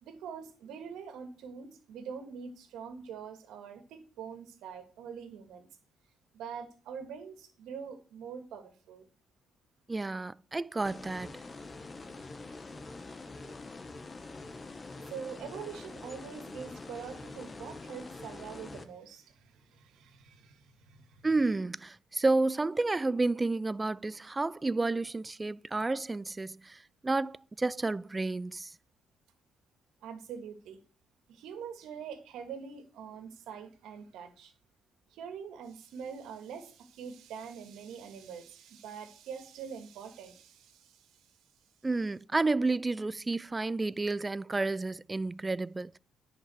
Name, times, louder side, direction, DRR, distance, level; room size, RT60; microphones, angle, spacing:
voice 1, 0.0-5.7 6.3-9.1 13.4-13.6 15.1-21.3 30.0-30.8 31.3-34.5 35.1-41.1, right 7 dB, 85° right, 2.2 m, -44 dB
voice 2, 9.9-11.3 21.2-28.7 41.8-46.0, right 3 dB, 20° right, 0.5 m, -31 dB
sound 1, 10.8-18.8, left 3 dB, 30° left, 1.3 m, -45 dB
10.5 x 5.8 x 6.5 m
cardioid pair, 90°, 0 cm